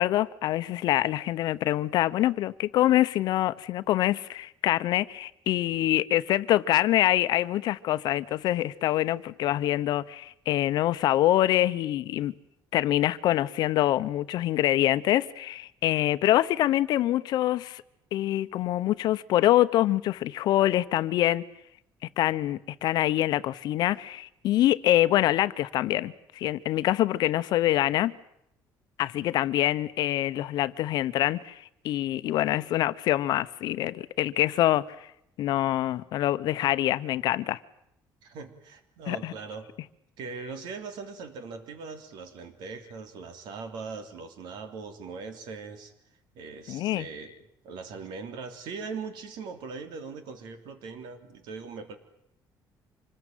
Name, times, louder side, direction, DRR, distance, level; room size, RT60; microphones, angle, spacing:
voice 1, 0.0-12.3 12.7-17.8 18.1-21.4 22.2-28.1 29.0-35.1 35.4-37.6 39.1-39.3 46.7-47.1, left 14 dB, 65° left, 0.9 m, -25 dB
voice 2, 38.2-39.7 40.2-45.9 46.3-47.3 47.6-52.0, right 4 dB, 70° right, 3.3 m, -40 dB
26.0 x 20.5 x 9.2 m
cardioid pair, 160°, 8 cm